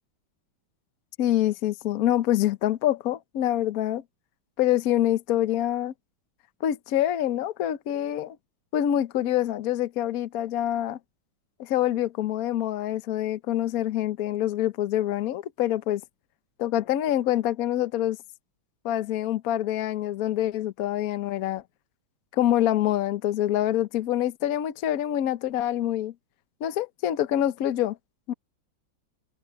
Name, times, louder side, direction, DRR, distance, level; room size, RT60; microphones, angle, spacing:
voice 1, 1.2-4.0 4.6-5.9 6.6-8.4 8.7-11.0 11.6-16.0 16.6-18.2 18.8-21.6 22.3-26.1 26.6-28.0 28.3-28.4, left 12 dB, 55° left, 1.0 m, -26 dB
omnidirectional pair, 2.3 m